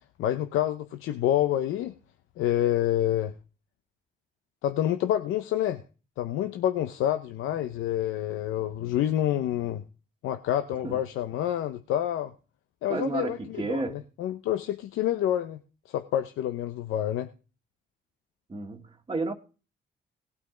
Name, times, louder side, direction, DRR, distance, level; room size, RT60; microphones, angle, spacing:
voice 1, 0.2-1.9 2.4-3.3 4.6-5.8 6.2-9.8 10.2-12.3 12.8-15.6 15.9-17.3, left 12 dB, 90° left, 0.7 m, -28 dB
voice 2, 12.9-14.0 18.5-19.3, right 3 dB, 25° right, 1.6 m, -31 dB
18.0 x 8.6 x 3.8 m
cardioid pair, 90°, 20 cm